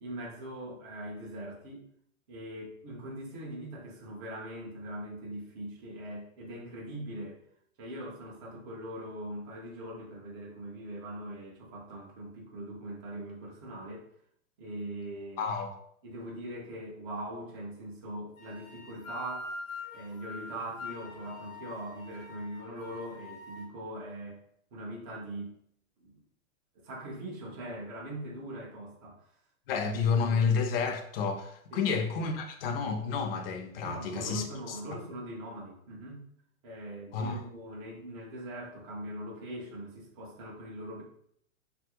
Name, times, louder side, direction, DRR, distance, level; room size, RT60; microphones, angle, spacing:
voice 1, 0.0-1.8 2.3-7.4 7.8-14.1 14.6-15.5 16.0-19.5 19.9-24.4 24.7-25.5 26.0-26.2 26.7-29.2 30.0-30.4 31.7-31.9 33.8-36.2 36.6-41.0, right 1 dB, 20° right, 0.3 m, -41 dB
voice 2, 15.4-15.7 29.7-34.8 37.1-37.4, left 5 dB, 45° left, 0.5 m, -30 dB
sound 1, 18.4-23.7, left 3 dB, 80° left, 0.9 m, -44 dB
2.9 x 2.4 x 2.8 m
hypercardioid pair, 135°, 40 cm